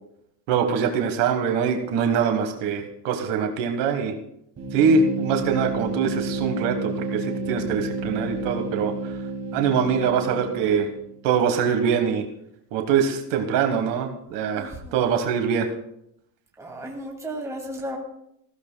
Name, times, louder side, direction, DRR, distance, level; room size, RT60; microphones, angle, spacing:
voice 1, 0.5-4.1 4.7-9.2 9.5-10.9 11.2-12.2 12.7-15.7, right 6 dB, 65° right, 5 dB, 1.6 m, -23 dB
sound 1, 4.6-11.2, right 2 dB, 30° right, 3.0 m, -31 dB
voice 2, 14.6-15.2 16.6-18.0, right 1 dB, 5° right, -1 dB, 2.4 m, -34 dB
19.5 x 15.0 x 2.3 m, 0.76 s
cardioid pair, 155°, 46 cm